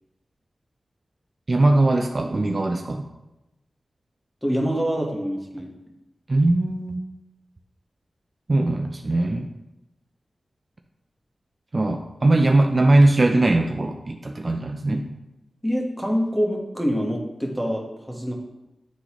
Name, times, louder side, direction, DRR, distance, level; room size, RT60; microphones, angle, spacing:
voice 1, 1.5-3.0 6.3-7.0 8.5-9.5 11.7-15.1, right 2 dB, 40° right, 4 dB, 0.4 m, -20 dB
voice 2, 4.4-5.7 15.6-18.3, equal, 5° left, -1 dB, 1.3 m, -25 dB
9.8 x 3.8 x 3.0 m, 0.97 s
wide cardioid pair, 85°, 0 cm